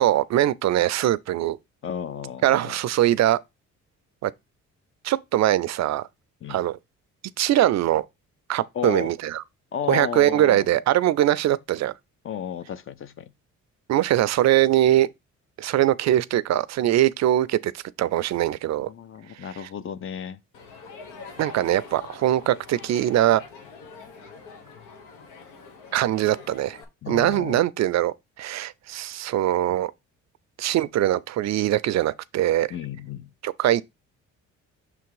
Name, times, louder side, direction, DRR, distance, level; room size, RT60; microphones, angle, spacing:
voice 1, 0.0-1.6 2.4-3.4 4.2-4.3 5.0-6.1 6.5-6.8 7.4-8.0 8.5-9.4 9.9-11.9 13.9-15.1 15.6-17.7 18.0-18.9 21.4-23.4 25.9-26.8 27.1-29.9 30.6-32.7 33.4-33.8, right 13 dB, 65° right, 0.5 m, -22 dB
voice 2, 1.8-2.8 6.4-6.6 8.7-9.1 9.7-10.7 12.2-13.3 18.8-20.4 27.0-27.6 32.7-33.3, left 8 dB, 45° left, 0.6 m, -33 dB
Crowd, 20.5-26.8, left 4 dB, 90° left, 1.3 m, -44 dB
5.9 x 3.5 x 4.7 m
cardioid pair, 90°, 30 cm